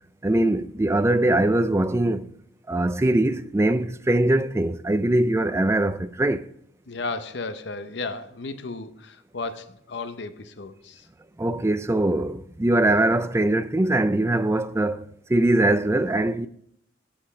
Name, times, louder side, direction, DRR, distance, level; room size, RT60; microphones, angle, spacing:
voice 1, 0.2-2.3 2.7-6.5 11.4-16.5, right 1 dB, 15° right, 0.4 m, -22 dB
voice 2, 6.9-11.1, left 3 dB, 65° left, 0.7 m, -34 dB
8.8 x 7.6 x 5.2 m
head